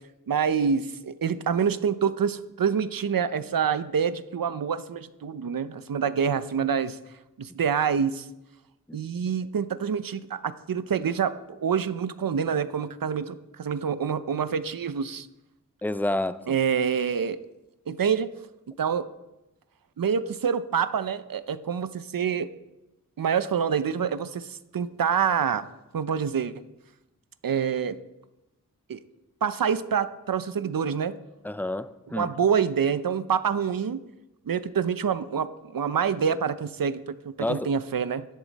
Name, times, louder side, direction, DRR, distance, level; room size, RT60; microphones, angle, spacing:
voice 1, 0.3-7.0 7.4-8.3 8.9-15.3 16.5-17.4 17.9-18.3 18.8-19.1 20.0-22.5 23.2-25.7 25.9-26.5 27.4-28.0 28.9-29.0 29.4-31.1 32.1-34.0 34.5-38.3, right 7 dB, 75° right, 0.7 m, -26 dB
voice 2, 15.8-16.6 31.4-32.3 37.4-37.7, left 1 dB, 5° left, 0.6 m, -29 dB
16.0 x 10.5 x 4.1 m
wide cardioid pair, 75°, 34 cm